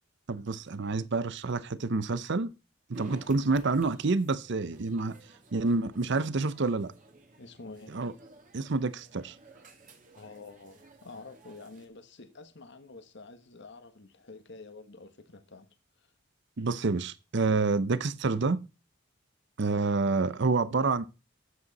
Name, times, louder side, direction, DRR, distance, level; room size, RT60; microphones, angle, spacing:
voice 1, 0.3-2.5 2.9-5.1 5.5-6.9 7.9-8.1 8.5-9.4 16.6-18.6 19.6-21.1, right 3 dB, 60° right, 0.7 m, -28 dB
sound 1, 2.9-11.9, right 1 dB, 40° right, 2.6 m, -53 dB
voice 2, 3.0-3.3 7.4-7.9 10.1-15.7 16.0-16.1, left 3 dB, 60° left, 1.4 m, -48 dB
13.5 x 8.0 x 4.1 m
head